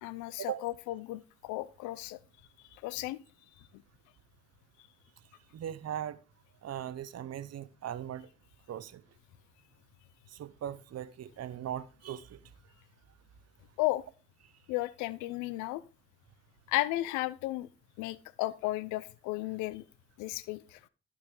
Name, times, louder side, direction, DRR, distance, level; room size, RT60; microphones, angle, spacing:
voice 1, 0.0-2.2 2.8-3.2 13.8-14.0 14.7-15.8 16.7-17.7 18.0-19.8 20.2-20.8, left 18 dB, 80° left, 0.5 m, -34 dB
voice 2, 5.5-6.2 6.6-8.3 8.7-9.0 10.3-12.4, right 10 dB, 60° right, 0.8 m, -39 dB
11.5 x 6.3 x 3.7 m
hypercardioid pair, 40°, 29 cm